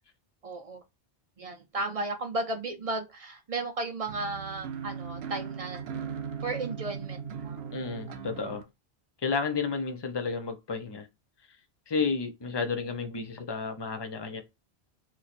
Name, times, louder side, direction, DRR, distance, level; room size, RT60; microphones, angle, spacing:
voice 1, 0.4-0.8 1.4-5.8 6.4-7.6, right 2 dB, 45° right, 0.5 m, -34 dB
sound 1, 4.1-8.6, right 7 dB, 70° right, 0.8 m, -38 dB
voice 2, 7.7-8.6 9.2-11.1 11.9-14.4, left 5 dB, 35° left, 0.4 m, -31 dB
3.0 x 2.6 x 4.1 m
omnidirectional pair, 1.1 m